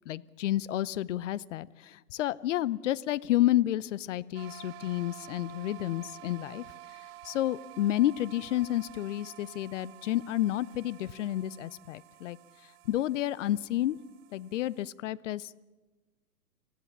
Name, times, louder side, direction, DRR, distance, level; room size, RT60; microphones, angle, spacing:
voice 1, 0.1-6.6 7.2-12.4 12.9-14.0 14.3-15.6, left 14 dB, 50° left, 19 dB, 0.8 m, -30 dB
sound 1, 4.3-14.9, right 15 dB, 40° right, 1.2 m, -51 dB
28.0 x 15.0 x 7.3 m, 1.2 s
hypercardioid pair, 130°, 46 cm